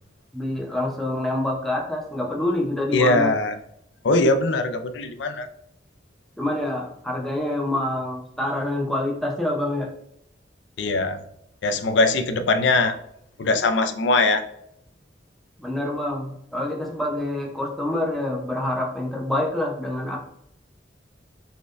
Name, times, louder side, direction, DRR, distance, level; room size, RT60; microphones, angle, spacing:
voice 1, 0.3-3.3 6.4-9.9 15.6-20.2, left 1 dB, ahead, -1 dB, 0.7 m, -26 dB
voice 2, 2.9-3.5 4.0-5.5 10.8-11.2 11.6-12.9 13.4-14.4, left 2 dB, 70° left, 8 dB, 0.4 m, -21 dB
4.2 x 3.3 x 2.5 m, 0.74 s
head